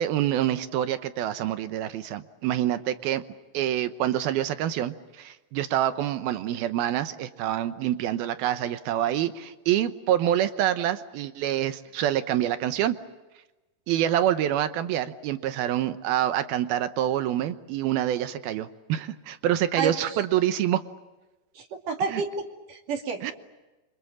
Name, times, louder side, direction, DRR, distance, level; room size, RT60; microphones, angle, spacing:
voice 1, 0.0-3.2 3.5-13.0 13.9-20.8 22.1-22.2 23.2-23.3, right 11 dB, 70° right, 11 dB, 2.6 m, -26 dB
voice 2, 19.8-20.2 21.6-23.3, right 4 dB, 50° right, 4 dB, 3.7 m, -31 dB
28.5 x 25.5 x 7.3 m, 1.1 s
omnidirectional pair, 5.1 m